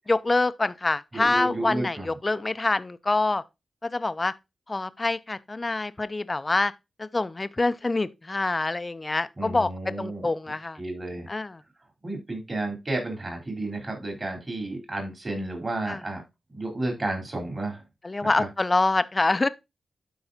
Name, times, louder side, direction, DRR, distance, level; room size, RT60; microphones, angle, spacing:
voice 1, 0.1-3.4 3.8-4.3 4.7-6.7 7.0-10.8 11.3-11.6 15.9-16.0 18.0-19.5, left 2 dB, 35° left, 0.6 m, -26 dB
voice 2, 1.1-2.1 9.4-10.3 10.8-11.3 12.0-16.2 16.5-17.8 18.2-18.5, right 2 dB, 40° right, 4.2 m, -32 dB
12.0 x 4.7 x 2.8 m
cardioid pair, 55°, 0 cm